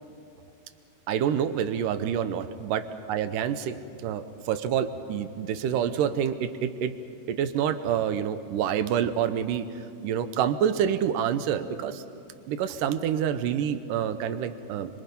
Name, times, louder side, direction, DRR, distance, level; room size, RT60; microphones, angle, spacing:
voice 1, 1.1-2.8 3.1-3.8 4.0-6.9 7.3-9.7 10.0-12.0 12.5-15.0, right 9 dB, 75° right, 11 dB, 2.1 m, -27 dB
30.0 x 24.0 x 5.4 m, 2.6 s
omnidirectional pair, 4.7 m